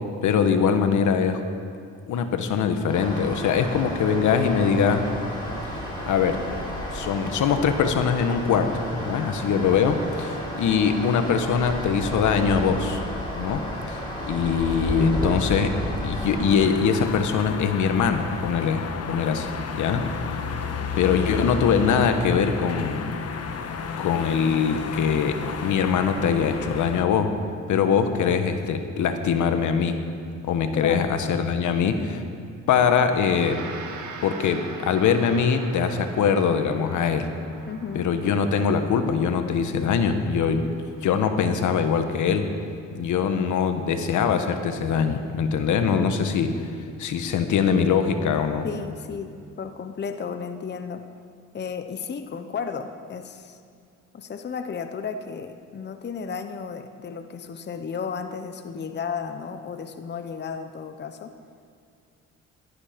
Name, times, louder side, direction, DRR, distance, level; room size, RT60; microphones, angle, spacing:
voice 1, 0.2-1.4 2.1-5.1 6.1-6.4 6.9-13.0 13.3-15.8 16.0-20.1 21.0-23.1 24.0-27.3 27.7-30.0 30.4-32.2 32.7-33.6 34.2-37.3 37.9-40.7 41.0-42.5 42.9-46.7 47.0-48.6, left 6 dB, 75° left, 8 dB, 1.2 m, -22 dB
sound 1, 2.9-16.6, left 1 dB, 15° left, 4.7 m, -32 dB
sound 2, 16.6-27.0, left 6 dB, 55° left, 1.3 m, -32 dB
voice 2, 30.7-31.1 37.7-38.1 48.6-51.0 51.5-53.6 54.1-61.3, left 6 dB, 35° left, 8 dB, 0.9 m, -33 dB
Gong, 33.0-42.6, right 4 dB, 75° right, 1.9 m, -43 dB
16.5 x 12.5 x 5.1 m, 2.3 s
cardioid pair, 90°, 30 cm